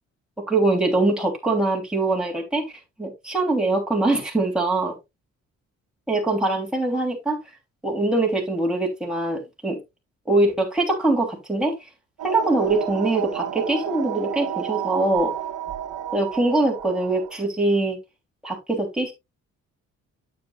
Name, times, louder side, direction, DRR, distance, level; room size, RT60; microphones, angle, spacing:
voice 1, 0.5-2.7 3.0-4.9 6.1-7.4 7.8-9.8 10.3-11.9 12.2-15.3 16.1-18.0 18.4-19.1, right 2 dB, 5° right, 3.1 m, -23 dB
sound 1, 12.2-17.4, right 10 dB, 75° right, 1.4 m, -31 dB
9.2 x 8.2 x 2.4 m
cardioid pair, 90°, 30 cm